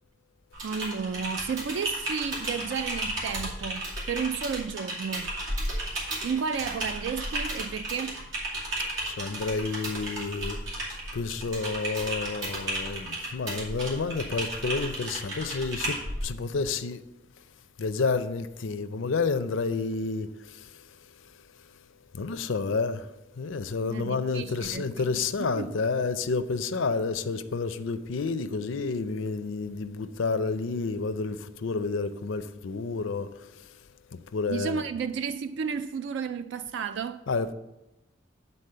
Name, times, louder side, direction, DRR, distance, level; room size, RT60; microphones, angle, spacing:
Typing, 0.5-16.2, right 1 dB, 85° right, 2.6 m, -34 dB
voice 1, 0.6-5.4 6.2-8.2 23.9-25.8 34.5-37.2, right 6 dB, 65° right, 0.3 m, -32 dB
voice 2, 9.0-10.6 11.1-17.0 17.8-20.8 22.1-23.1 23.4-33.5 34.1-34.8 37.3-37.5, left 4 dB, 75° left, 0.5 m, -30 dB
9.9 x 4.1 x 6.6 m
head